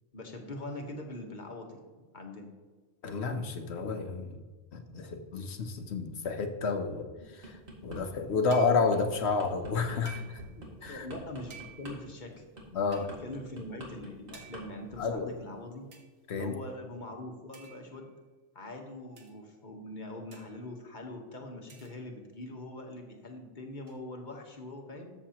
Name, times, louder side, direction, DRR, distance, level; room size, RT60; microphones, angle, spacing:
voice 1, 0.1-1.8 2.1-2.5 10.5-12.4 12.9-15.9 16.4-18.1 18.5-25.1, left 1 dB, 35° left, 2 dB, 1.3 m, -43 dB
voice 2, 3.0-4.4 4.7-10.4 10.8-11.1 12.7-13.1 15.0-15.3 16.3-16.5, left 4 dB, 55° left, 6 dB, 1.0 m, -30 dB
sound 1, 7.2-8.0 8.4-14.6 14.9-15.2, right 1 dB, 40° right, 2.2 m, -46 dB
sound 2, 8.5-9.0 10.0-10.6 11.5-12.1 12.9-13.2 14.3-14.8 15.9-16.1 17.5-18.1 19.2-19.4 20.3-20.7 21.7-22.2 23.9-24.0, right 7 dB, 75° right, 1.6 m, -52 dB
13.0 x 7.2 x 2.9 m, 1.3 s
omnidirectional pair, 1.4 m